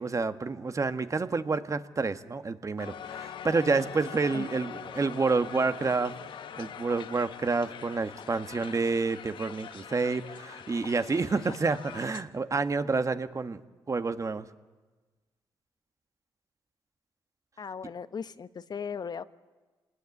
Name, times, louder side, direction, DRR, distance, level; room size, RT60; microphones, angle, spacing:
voice 1, 0.0-6.1 6.6-13.6 13.9-14.5, right 4 dB, 40° right, 10 dB, 1.6 m, -29 dB
Crowd, 2.8-12.2, left 9 dB, 75° left, 1.2 m, -43 dB
voice 2, 17.6-19.2, left 6 dB, 55° left, 13 dB, 1.1 m, -37 dB
26.0 x 20.0 x 9.7 m, 1.3 s
supercardioid pair, 55°, 9 cm